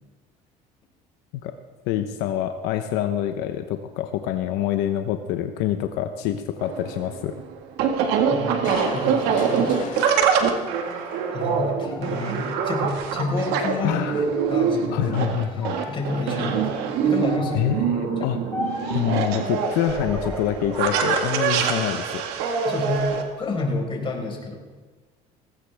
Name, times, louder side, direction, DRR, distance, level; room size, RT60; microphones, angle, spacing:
voice 1, 1.9-7.3 13.8-14.2 14.9-15.7 17.5-18.4 18.9-22.2, left 11 dB, 85° left, 7 dB, 0.9 m, -26 dB
sound 1, 6.6-23.2, right 6 dB, 85° right, 1.8 m, -24 dB
voice 2, 8.3-8.6 8.9-9.6 11.3-15.1 15.9-17.7 18.2-18.4 22.6-24.5, left 2 dB, 30° left, 0 dB, 4.7 m, -29 dB
Crushing, 8.6-12.0 12.5-12.6, left 5 dB, 55° left, 3.8 m, -38 dB
sound 2, 10.7-13.9 14.3-15.2 15.6-16.2 17.2-17.8 18.5-19.1 19.8-20.9 21.3-22.3 22.8-23.5, left 2 dB, 10° left, 3.4 m, -37 dB
19.0 x 16.5 x 3.5 m, 1.4 s
cardioid pair, 115°, 17 cm